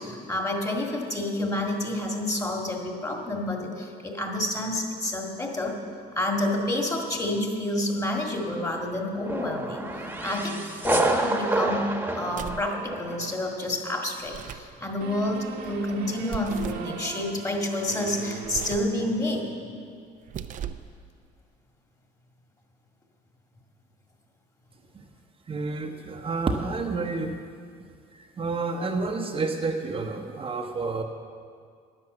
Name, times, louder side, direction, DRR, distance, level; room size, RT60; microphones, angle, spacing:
voice 1, 0.0-5.8 6.2-11.9 12.2-19.5, left 1 dB, 20° left, 2 dB, 2.0 m, -29 dB
sound 1, 9.2-13.3, right 2 dB, 10° right, 1.3 m, -28 dB
sound 2, 12.3-12.8 14.2-14.7 16.3-16.9 18.4-19.0 20.2-20.9, right 9 dB, 50° right, 0.6 m, -37 dB
sound 3, 15.0-19.7, right 6 dB, 75° right, 1.4 m, -39 dB
voice 2, 25.5-27.4 28.4-31.0, right 3 dB, 35° right, 2 dB, 0.9 m, -29 dB
10.5 x 10.0 x 7.7 m, 2.2 s
cardioid pair, 110°, 17 cm